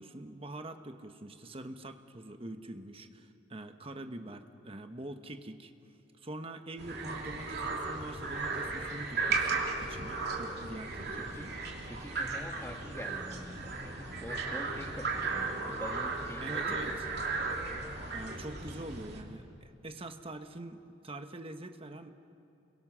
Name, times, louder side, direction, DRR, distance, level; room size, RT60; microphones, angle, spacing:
voice 1, 0.0-5.7 6.2-11.5 16.4-16.9 18.1-22.1, right 1 dB, 30° right, 7 dB, 1.2 m, -44 dB
sound 1, 6.8-19.2, right 4 dB, 60° right, 2.9 m, -35 dB
voice 2, 11.0-11.6 11.8-17.0, left 1 dB, 15° left, 3 dB, 1.9 m, -45 dB
30.0 x 22.5 x 6.3 m, 2.9 s
head